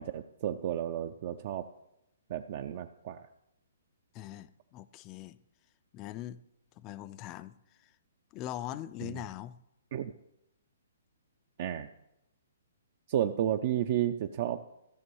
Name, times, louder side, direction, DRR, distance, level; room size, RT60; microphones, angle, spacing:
voice 1, 0.0-1.6 2.3-3.3 9.0-9.2 9.9-10.1 11.6-11.9 13.1-14.6, right 11 dB, 45° right, 9 dB, 0.4 m, -32 dB
voice 2, 4.1-5.4 5.9-6.4 6.8-7.9 8.3-9.6, left 13 dB, 25° left, 16 dB, 0.4 m, -42 dB
14.0 x 6.1 x 4.7 m, 0.85 s
hypercardioid pair, 160°, 0 cm